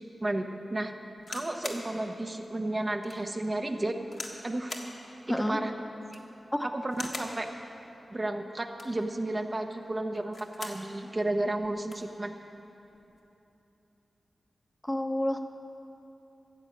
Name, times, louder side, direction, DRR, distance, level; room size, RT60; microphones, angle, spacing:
voice 1, 0.2-0.9 1.3-4.0 4.4-4.8 5.5-5.7 6.1-6.2 6.6-7.5 8.1-12.3, right 1 dB, 35° right, 4 dB, 0.9 m, -32 dB
sound 1, 1.2-1.9 2.4-2.5 3.0-3.2 4.1-4.4 4.7-4.9 6.0-6.4 6.9-7.4 8.6-9.0 10.2-10.9 11.3-11.4 11.6-12.1 12.9-13.2, left 2 dB, 60° left, 1.6 m, -41 dB
voice 2, 5.3-5.6 6.5-6.7 14.8-15.4, left 1 dB, 15° left, 4 dB, 0.9 m, -29 dB
14.0 x 8.1 x 7.3 m, 2.9 s
cardioid pair, 50°, 0 cm